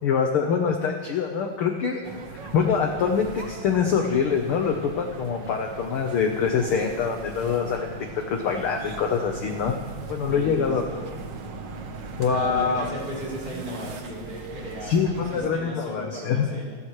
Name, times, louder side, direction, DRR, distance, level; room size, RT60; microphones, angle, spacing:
voice 1, 0.0-2.0 2.3-7.9 8.3-9.7 10.1-10.8 12.2-12.8 14.8-16.5, left 6 dB, 60° left, 3 dB, 1.5 m, -24 dB
sound 1, 2.0-15.5, right 4 dB, 70° right, 1.1 m, -39 dB
voice 2, 10.3-11.1 12.2-16.8, equal, 15° right, -6 dB, 6.7 m, -35 dB
30.0 x 13.0 x 3.3 m, 1.5 s
omnidirectional pair, 3.6 m